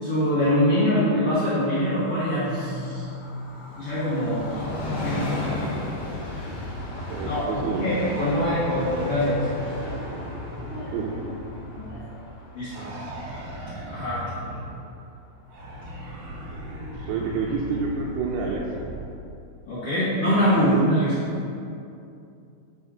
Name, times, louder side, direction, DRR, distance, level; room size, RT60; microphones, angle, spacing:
voice 1, 0.0-3.0 3.8-4.4 5.0-5.4 6.0-6.3 7.2-9.5 10.6-10.9 11.7-12.2 12.5-12.9 13.9-14.2 19.7-21.2, equal, 85° left, -10 dB, 1.3 m, -24 dB
Train, 1.7-15.0 15.4-15.5, left 2 dB, 55° left, 1.9 m, -36 dB
sound 1, 4.6-7.9 8.5-12.2 12.7-14.9 15.5-19.2 20.1-20.8, equal, 60° right, 1.7 m, -38 dB
voice 2, 7.1-8.1 10.9-11.1 17.0-18.8, right 5 dB, 85° right, -2 dB, 2.6 m, -29 dB
9.4 x 3.5 x 4.9 m, 2.6 s
omnidirectional pair, 4.6 m